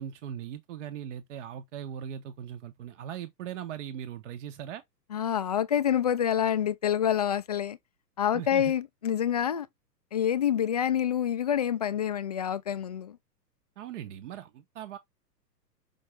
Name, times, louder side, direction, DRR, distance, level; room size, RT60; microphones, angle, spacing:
voice 1, 0.0-4.8 8.3-8.7 13.8-15.0, right 9 dB, 45° right, 1.1 m, -39 dB
voice 2, 5.1-7.8 8.2-9.7 10.1-13.2, left 9 dB, 25° left, 0.4 m, -27 dB
6.3 x 5.2 x 3.5 m
figure-of-eight pair, 110°, 50 cm